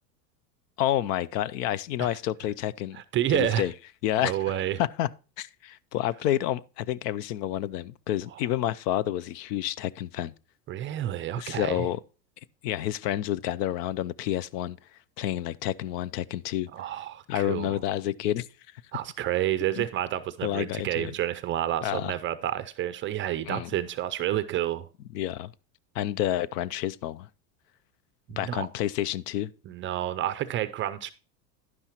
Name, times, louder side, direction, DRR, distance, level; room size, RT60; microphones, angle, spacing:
voice 1, 0.8-3.0 3.3-3.7 4.0-4.3 4.8-5.1 5.4-10.3 11.4-12.0 12.6-14.8 15.2-16.7 17.3-18.5 19.8-19.9 20.4-21.1 21.8-22.1 23.5-23.7 25.1-25.5 25.9-27.3 28.4-29.5, left 12 dB, 70° left, 0.6 m, -29 dB
voice 2, 2.9-3.6 4.2-4.8 8.3-8.4 10.7-11.9 16.7-17.7 18.9-24.9 28.3-28.7 29.7-31.1, right 12 dB, 25° right, 0.4 m, -29 dB
11.0 x 9.8 x 2.9 m
hypercardioid pair, 110°, 50 cm